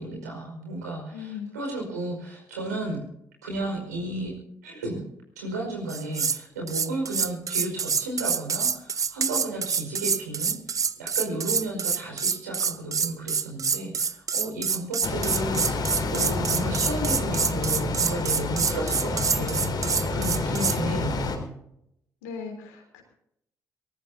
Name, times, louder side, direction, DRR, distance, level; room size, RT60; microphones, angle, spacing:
voice 1, 0.0-3.0 3.4-4.3 4.6-5.0 5.3-21.5, right 2 dB, 90° right, 0 dB, 5.1 m, -33 dB
voice 2, 1.1-1.5 22.2-23.0, left 6 dB, 85° left, 3 dB, 3.5 m, -38 dB
sound 1, 5.9-6.4 6.7-20.8, right 6 dB, 40° right, 0.8 m, -27 dB
sound 2, 15.0-21.4, left 3 dB, 55° left, 3.8 m, -29 dB
22.5 x 19.0 x 2.8 m, 0.78 s
hypercardioid pair, 45°, 9 cm